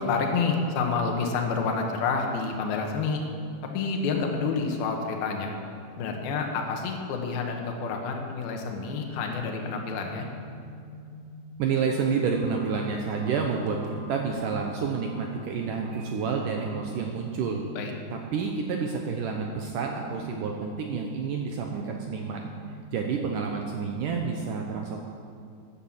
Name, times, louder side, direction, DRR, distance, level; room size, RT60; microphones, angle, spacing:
voice 1, 0.0-3.2 3.7-5.5 6.0-10.3 17.8-17.9, left 4 dB, 70° left, 2 dB, 3.1 m, -28 dB
sound 1, 9.3-23.8, left 1 dB, 45° right, 1.0 m, -45 dB
voice 2, 11.6-17.6 18.1-22.5 22.9-25.0, right 5 dB, 75° right, 2 dB, 2.0 m, -29 dB
Telephone, 12.3-15.3 15.8-16.1 16.5-16.8, equal, 90° right, 1.1 m, -50 dB
13.0 x 10.5 x 7.3 m, 2.4 s
omnidirectional pair, 4.8 m